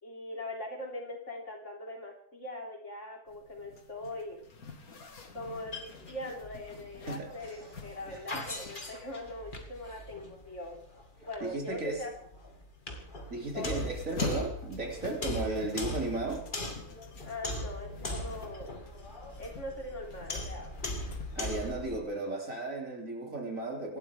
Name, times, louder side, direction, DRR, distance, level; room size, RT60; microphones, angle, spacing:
voice 1, 0.0-4.4 5.3-10.8 11.2-12.1 13.5-13.8 15.2-15.5 17.2-18.8 19.4-20.7, left 1 dB, 50° left, 0 dB, 3.7 m, -41 dB
Zipper (clothing), 3.3-21.8, left 4 dB, 70° left, 2.3 m, -47 dB
sound 1, 5.4-22.0, left 1 dB, 35° left, 2.1 m, -40 dB
voice 2, 11.4-12.0 13.3-16.4 21.4-24.0, right 2 dB, 60° right, 1 dB, 3.7 m, -35 dB
26.5 x 12.0 x 3.6 m, 0.63 s
omnidirectional pair, 1.6 m